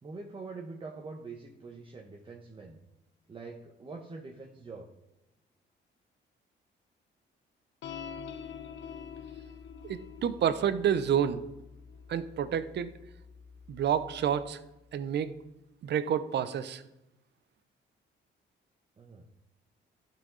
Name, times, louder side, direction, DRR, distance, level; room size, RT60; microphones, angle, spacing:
voice 1, 0.0-2.8 3.3-4.9 19.0-19.3, right 3 dB, 25° right, 1 dB, 1.0 m, -44 dB
sound 1, 7.8-14.5, left 7 dB, 70° left, 0.6 m, -46 dB
voice 2, 9.8-11.4 12.1-12.9 13.7-14.6 14.9-15.3 15.8-16.8, right 9 dB, 60° right, 13 dB, 0.7 m, -29 dB
11.0 x 5.9 x 3.9 m, 0.93 s
cardioid pair, 90°, 20 cm